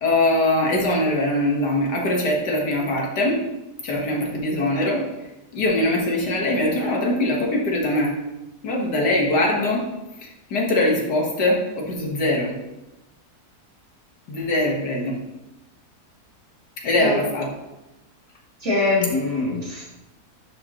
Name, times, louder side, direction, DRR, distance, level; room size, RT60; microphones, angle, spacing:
voice 1, 0.0-3.4 3.8-5.0 5.5-8.1 8.6-9.9 10.2-12.5 14.3-15.2 16.8-17.5, left 1 dB, 90° left, -1 dB, 2.1 m, -22 dB
voice 2, 18.6-19.8, left 3 dB, 45° right, -7 dB, 3.2 m, -23 dB
11.0 x 5.1 x 3.0 m, 0.97 s
omnidirectional pair, 1.7 m